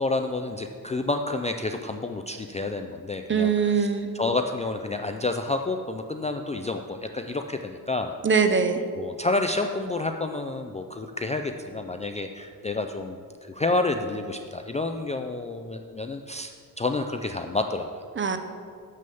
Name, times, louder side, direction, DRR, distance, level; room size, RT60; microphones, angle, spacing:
voice 1, 0.0-3.9 4.1-8.2 9.0-16.5 16.8-18.0, left 2 dB, 20° left, 5 dB, 0.3 m, -29 dB
voice 2, 3.3-4.1 8.2-8.8 18.2-18.4, right 5 dB, 30° right, 8 dB, 0.7 m, -22 dB
6.9 x 6.5 x 6.9 m, 2.3 s
cardioid pair, 115°, 37 cm